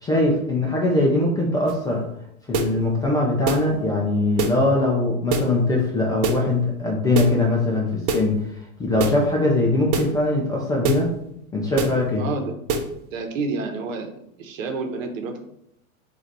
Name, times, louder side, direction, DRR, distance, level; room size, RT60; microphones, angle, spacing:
voice 1, 0.0-2.0 2.5-8.3 8.8-11.1 11.5-12.2, left 2 dB, 10° left, -3 dB, 0.4 m, -21 dB
sound 1, 1.7-1.8 2.5-2.8 3.5-3.7 4.4-4.6 5.3-5.5 6.2-6.5 7.1-7.4 8.1-8.3 9.0-9.2 9.9-10.2 10.8-11.1 11.8-12.0 12.7-12.9, right 4 dB, 40° right, 0.8 m, -24 dB
voice 2, 12.2-12.5 13.1-14.1 14.4-15.4, right 3 dB, 65° right, 5 dB, 1.1 m, -29 dB
3.9 x 2.6 x 4.5 m, 0.74 s
hypercardioid pair, 120°, 43 cm